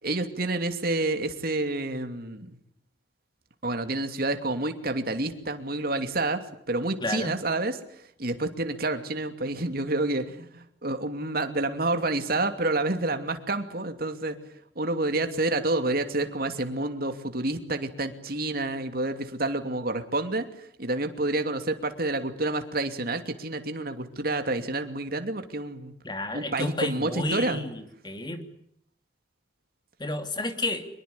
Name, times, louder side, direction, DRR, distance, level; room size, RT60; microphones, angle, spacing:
voice 1, 0.0-2.6 3.6-7.8 8.2-14.4 14.8-20.4 20.8-25.9 26.3-27.6, right 2 dB, 55° right, 7 dB, 2.8 m, -29 dB
voice 2, 7.0-7.3 26.0-28.4 30.0-30.9, left 2 dB, 25° left, 7 dB, 2.9 m, -31 dB
24.5 x 22.0 x 8.6 m, 0.70 s
head